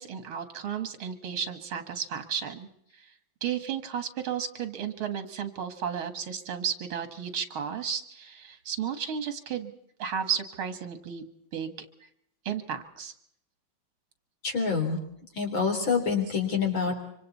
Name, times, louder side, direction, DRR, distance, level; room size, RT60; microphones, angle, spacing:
voice 1, 0.0-2.7 3.4-9.7 10.0-11.2 11.5-11.9 12.5-13.1, right 8 dB, 85° right, 9 dB, 2.5 m, -33 dB
voice 2, 14.4-15.0 15.4-17.0, left 5 dB, 70° left, 2 dB, 4.6 m, -26 dB
25.5 x 25.5 x 4.2 m, 0.72 s
omnidirectional pair, 2.2 m